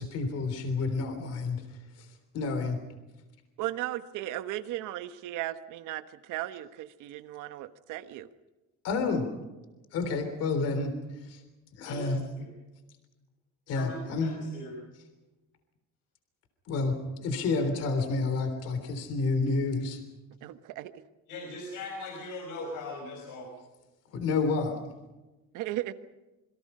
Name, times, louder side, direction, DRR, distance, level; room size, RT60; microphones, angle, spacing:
voice 1, 0.0-1.6 2.3-2.8 8.8-9.3 9.9-10.9 11.3-11.4 11.8-12.3 13.7-14.3 16.7-20.0 24.1-24.8, left 3 dB, 55° left, 8 dB, 3.5 m, -29 dB
voice 2, 3.6-8.3 20.4-21.0 25.5-25.9, right 14 dB, 80° right, 11 dB, 1.4 m, -36 dB
voice 3, 13.7-14.7 21.3-23.5, left 2 dB, 85° left, 1 dB, 5.7 m, -40 dB
27.5 x 23.5 x 5.6 m, 1.1 s
cardioid pair, 175°, 30 cm